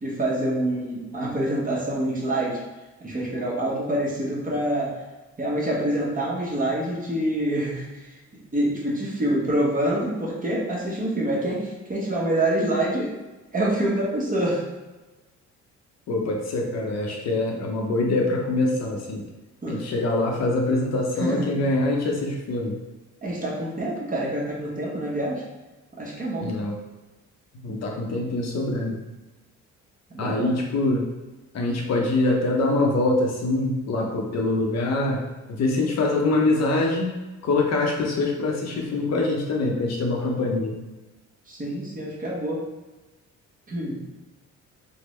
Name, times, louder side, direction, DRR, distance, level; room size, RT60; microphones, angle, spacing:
voice 1, 0.0-2.6 3.0-4.9 5.4-7.9 8.5-13.1 13.5-14.6 19.6-19.8 21.2-21.5 23.2-25.4 26.0-26.5 30.1-30.6 41.5-42.6 43.7-44.0, right 1 dB, 25° right, -4 dB, 0.9 m, -26 dB
voice 2, 16.1-19.2 19.7-22.8 26.4-26.7 27.6-29.0 30.2-31.1 31.5-35.2 35.5-37.2 37.4-40.8, left 2 dB, 60° left, 0 dB, 0.6 m, -24 dB
3.4 x 2.1 x 3.1 m, 1.1 s
cardioid pair, 90°, 30 cm